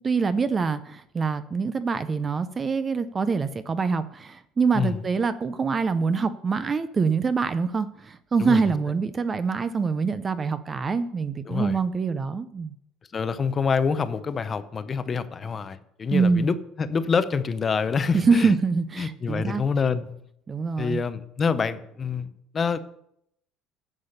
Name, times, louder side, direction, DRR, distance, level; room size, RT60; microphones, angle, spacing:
voice 1, 0.0-12.7 16.1-16.5 18.1-19.6 20.5-21.0, right 5 dB, 20° right, 13 dB, 0.4 m, -25 dB
voice 2, 11.5-11.8 13.1-18.5 19.0-20.1 20.8-22.8, left 5 dB, 25° left, 12 dB, 0.6 m, -26 dB
9.7 x 6.8 x 6.6 m, 0.74 s
cardioid pair, 160°, 0 cm